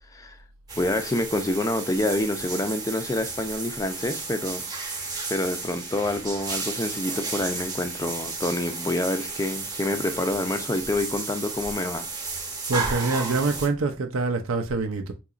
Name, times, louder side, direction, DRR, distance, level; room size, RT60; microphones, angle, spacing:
voice 1, 0.1-0.4 0.8-12.1, left 1 dB, 15° left, 0.4 m, -27 dB
sound 1, 0.7-13.7, right 4 dB, 20° right, 0.8 m, -33 dB
voice 2, 12.7-15.1, right 3 dB, 80° right, 0.5 m, -25 dB
3.8 x 2.9 x 2.4 m
head